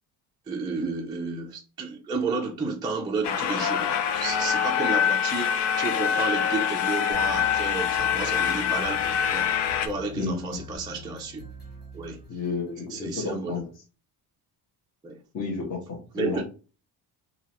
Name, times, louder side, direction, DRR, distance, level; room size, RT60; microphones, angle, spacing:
voice 1, 0.5-9.5 9.8-11.4 11.9-12.2 12.9-13.6 15.0-15.2 16.1-16.4, right 4 dB, 10° right, 0.4 m, -32 dB
sound 1, 3.2-9.9, left 8 dB, 90° left, 0.7 m, -25 dB
sound 2, 7.1-12.8, right 1 dB, 25° left, 0.9 m, -44 dB
voice 2, 10.1-10.6 12.3-13.6 15.3-16.4, left 4 dB, 40° left, 1.3 m, -31 dB
3.9 x 2.7 x 3.0 m
cardioid pair, 165°, 40 cm